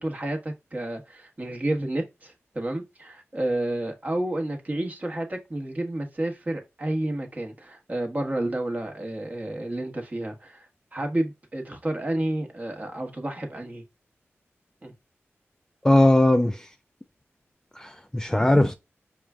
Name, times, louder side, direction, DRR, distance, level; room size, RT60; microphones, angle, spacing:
voice 1, 0.0-10.6 10.9-13.8 14.8-14.9, right 1 dB, 35° right, 1.2 m, -30 dB
voice 2, 15.8-16.7 17.8-18.7, left 1 dB, 15° left, 0.4 m, -19 dB
4.9 x 2.3 x 3.5 m
cardioid pair, 55°, 5 cm